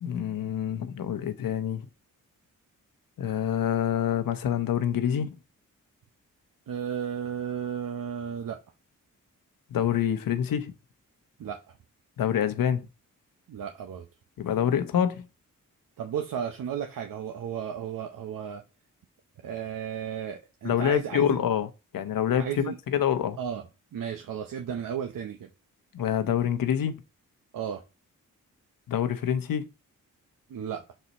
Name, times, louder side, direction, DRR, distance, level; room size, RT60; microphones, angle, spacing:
voice 1, 0.0-1.9 3.2-5.3 9.7-10.7 12.2-12.9 14.4-15.2 20.6-23.4 25.9-27.0 28.9-29.7, left 9 dB, 80° left, 0.9 m, -26 dB
voice 2, 6.7-8.6 11.4-11.7 13.5-14.0 16.0-18.6 19.4-21.4 22.4-22.8 23.4-23.6 23.9-25.5 27.5-27.8 30.5-30.8, right 8 dB, 75° right, 0.9 m, -34 dB
6.6 x 4.1 x 4.1 m
cardioid pair, 65°, 33 cm